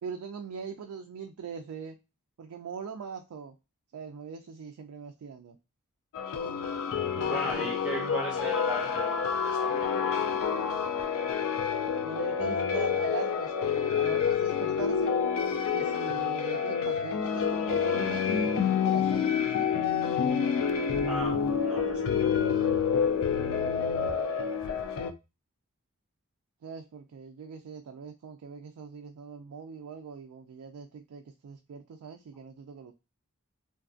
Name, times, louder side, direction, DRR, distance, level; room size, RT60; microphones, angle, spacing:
voice 1, 0.0-2.0 2.4-3.5 3.9-5.6 7.2-8.4 12.0-15.1 15.7-19.9 23.5-24.2 26.6-32.9, right 6 dB, 75° right, 0.3 m, -41 dB
sound 1, 6.1-25.1, left 7 dB, 60° left, 0.3 m, -28 dB
voice 2, 7.3-10.2 21.1-22.4, equal, 5° right, 0.4 m, -37 dB
2.5 x 2.4 x 2.4 m
head